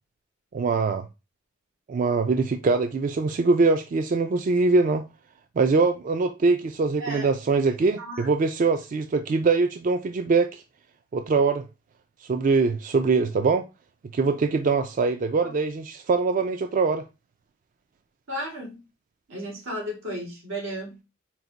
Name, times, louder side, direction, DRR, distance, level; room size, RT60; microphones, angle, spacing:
voice 1, 0.5-1.0 1.9-5.0 5.6-10.6 11.1-11.7 12.3-13.6 14.1-17.0, right 4 dB, 40° right, 0.3 m, -23 dB
voice 2, 7.0-7.3 8.0-8.3 15.4-15.5 18.3-18.8 19.3-21.0, equal, 90° right, 1.8 m, -34 dB
4.6 x 2.1 x 3.9 m
head